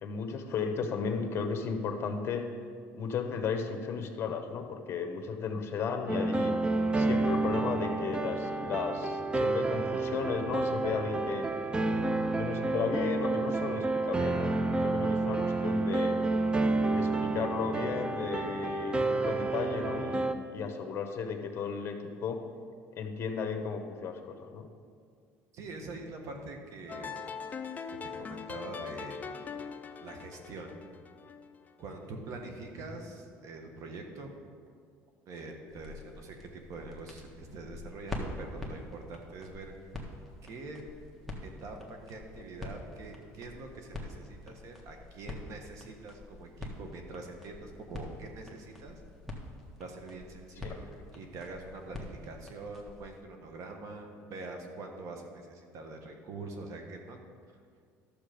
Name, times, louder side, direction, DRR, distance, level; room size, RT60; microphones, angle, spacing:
voice 1, 0.0-2.4 2.9-6.6 6.9-11.5 12.3-16.2 16.9-22.4 22.9-24.7 50.6-50.8, left 6 dB, 45° left, 5 dB, 1.2 m, -34 dB
sound 1, 6.1-20.3, right 3 dB, 15° right, 0.6 m, -30 dB
voice 2, 25.5-27.2 28.0-29.6 30.0-30.7 31.8-34.3 35.3-39.7 40.4-40.8 41.4-49.0 49.8-57.2, right 3 dB, 55° right, 3 dB, 1.4 m, -44 dB
sound 2, 26.9-32.0, left 6 dB, 25° left, 0.6 m, -41 dB
sound 3, 35.7-53.2, left 1 dB, ahead, 1.5 m, -45 dB
12.0 x 6.9 x 5.1 m, 2.2 s
cardioid pair, 110°, 6 cm